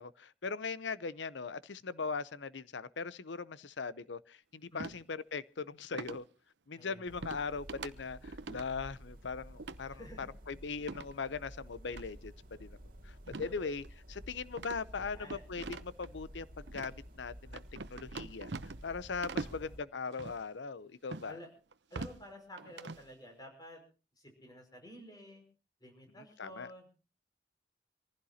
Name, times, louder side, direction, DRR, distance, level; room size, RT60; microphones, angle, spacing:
voice 1, 0.0-6.2 6.7-12.8 13.0-17.6 17.9-18.6 18.8-21.4 26.2-26.7, left 5 dB, 80° left, 0.7 m, -40 dB
sound 1, 4.8-5.0 5.9-6.2 7.2-7.4 7.7-7.9 8.2-8.7 9.6-9.8 10.8-11.1 11.9-12.0 13.3-13.6 13.8-13.9 14.5-16.1 16.7-16.9 17.5-18.9 19.2-19.6 20.1-20.4 21.1-21.3 21.7-22.2 22.6-23.1, right 3 dB, 70° right, 0.8 m, -42 dB
voice 2, 6.8-7.1 9.9-10.3 13.4-13.7 15.0-15.4 19.4-19.7 21.3-21.5 21.9-23.8 24.2-25.4 25.8-26.9, left 1 dB, 25° left, 5.5 m, -51 dB
sound 2, 7.1-19.8, equal, 50° right, 2.2 m, -52 dB
26.0 x 15.5 x 2.8 m
head